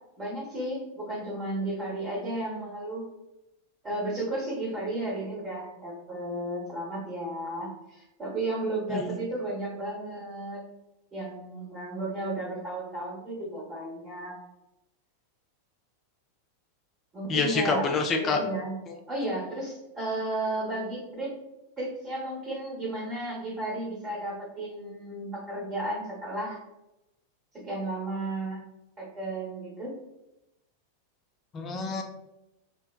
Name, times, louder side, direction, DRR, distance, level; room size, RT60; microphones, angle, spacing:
voice 1, 0.2-3.0 3.8-10.6 11.1-14.3 17.1-17.9 18.2-18.8 19.1-21.3 21.8-26.6 27.5-28.6 29.0-29.9, right 1 dB, 20° right, -5 dB, 0.9 m, -33 dB
voice 2, 17.3-18.4 31.5-32.0, left 4 dB, 25° left, 2 dB, 0.4 m, -27 dB
2.7 x 2.2 x 2.3 m, 0.92 s
figure-of-eight pair, 90°, 0 cm